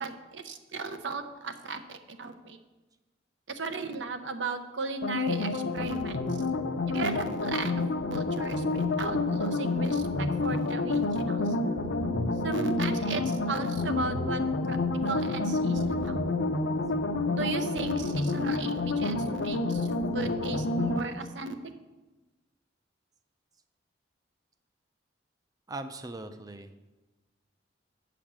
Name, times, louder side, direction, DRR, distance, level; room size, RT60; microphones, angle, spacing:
voice 1, 0.0-1.8 2.1-2.6 3.5-6.2 6.9-11.0 11.3-11.4 12.4-14.8 15.0-16.2 17.3-19.9 20.1-21.6, right 3 dB, 70° right, 8 dB, 0.8 m, -35 dB
sound 1, 5.0-21.0, left 3 dB, 75° left, 0.7 m, -29 dB
voice 2, 25.7-26.9, right 2 dB, 20° right, 9 dB, 0.5 m, -40 dB
8.0 x 5.1 x 7.3 m, 1.1 s
head